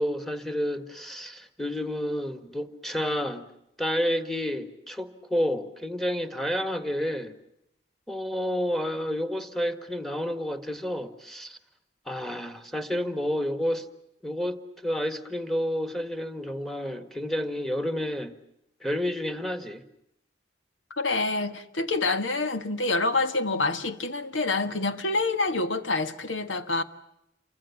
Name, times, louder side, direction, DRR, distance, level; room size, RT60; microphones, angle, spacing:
voice 1, 0.0-3.5 3.8-7.4 8.1-11.6 12.0-13.9 14.2-18.3 18.8-19.8, equal, ahead, 1.7 m, -30 dB
voice 2, 20.9-26.8, left 3 dB, 90° left, 1.7 m, -27 dB
29.0 x 24.5 x 7.2 m
head